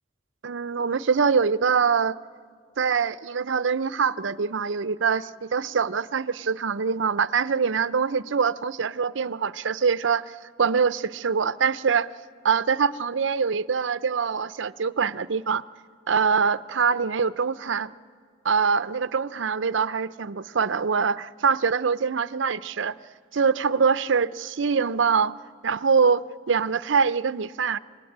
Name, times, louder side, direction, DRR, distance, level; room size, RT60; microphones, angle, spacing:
voice 1, 0.4-2.2 2.8-12.1 12.4-15.6 16.1-17.9 18.4-22.9 23.3-25.4 25.6-27.8, right 5 dB, 80° right, 15 dB, 0.6 m, -24 dB
27.5 x 23.5 x 8.7 m, 2.1 s
head